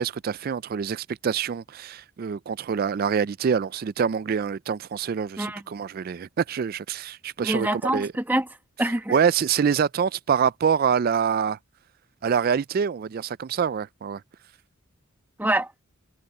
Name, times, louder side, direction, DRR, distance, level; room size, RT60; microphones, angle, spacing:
voice 1, 0.0-8.1 9.1-11.6 12.2-14.2, right 7 dB, 45° right, 0.3 m, -25 dB
voice 2, 7.4-8.4 8.8-9.2 15.4-15.8, right 1 dB, 10° right, 1.1 m, -25 dB
head